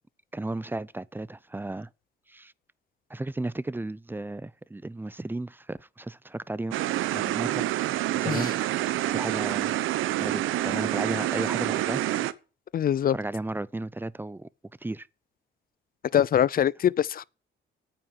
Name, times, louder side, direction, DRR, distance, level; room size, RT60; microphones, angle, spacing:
voice 1, 0.3-1.9 2.3-2.5 3.1-6.8 7.1-7.6 8.1-9.7 10.2-12.0 13.1-14.5 14.8-15.1, right 2 dB, 10° right, 0.6 m, -34 dB
sound 1, 6.7-12.3, right 14 dB, 90° right, 0.9 m, -27 dB
voice 2, 12.7-13.2 16.1-17.2, left 10 dB, 45° left, 0.6 m, -23 dB
9.4 x 8.9 x 9.0 m
cardioid pair, 90°, 20 cm